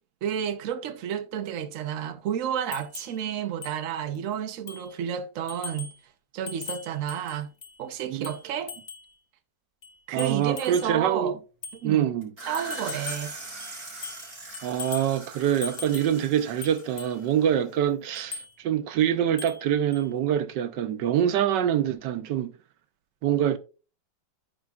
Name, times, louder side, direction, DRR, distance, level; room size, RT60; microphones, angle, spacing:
voice 1, 0.2-5.9 6.3-7.5 7.8-8.7 10.1-11.4 11.8-12.1 12.5-13.4, right 9 dB, 55° right, 1.0 m, -31 dB
sound 1, 2.7-3.2 3.6-3.8 4.1-4.2 4.7-4.9 5.5-6.0 6.5-7.8 8.2-9.1 9.8-11.0 11.6-11.8 12.5-13.3 13.6-14.3 14.5-15.2 15.6-16.2 16.6-17.2 18.1-18.5 19.4-19.6 19.9-20.0, left 5 dB, 40° left, 0.7 m, -40 dB
voice 2, 10.1-11.3 11.8-12.3 14.6-22.5 23.2-23.6, right 10 dB, 85° right, 1.4 m, -25 dB
sound 2, 12.2-17.8, right 3 dB, 30° right, 4.0 m, -41 dB
14.0 x 5.3 x 2.3 m
omnidirectional pair, 1.9 m